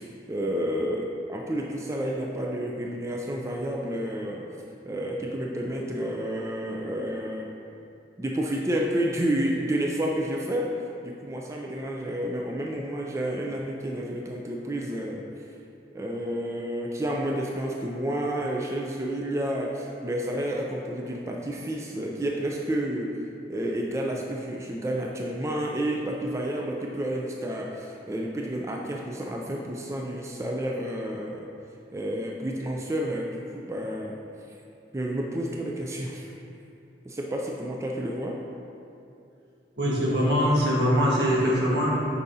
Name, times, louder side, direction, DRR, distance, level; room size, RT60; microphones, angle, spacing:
voice 1, 0.0-4.5 4.8-7.5 8.2-10.7 11.0-15.2 15.9-23.2 23.5-31.5 31.9-34.2 34.9-36.3 37.1-38.4, right 1 dB, 15° right, -1 dB, 0.3 m, -30 dB
voice 2, 39.8-42.0, equal, 80° right, -5 dB, 1.5 m, -22 dB
8.3 x 5.4 x 2.7 m, 2.7 s
head